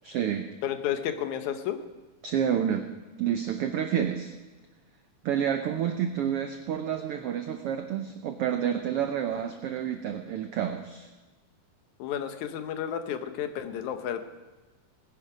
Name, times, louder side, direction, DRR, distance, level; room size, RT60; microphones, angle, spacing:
voice 1, 0.0-0.5 2.2-2.8 3.2-4.3 5.2-11.1, right 9 dB, 75° right, 6 dB, 1.3 m, -29 dB
voice 2, 0.6-1.8 12.0-14.2, left 9 dB, 75° left, 8 dB, 2.3 m, -32 dB
19.5 x 10.5 x 5.0 m, 1.2 s
omnidirectional pair, 3.5 m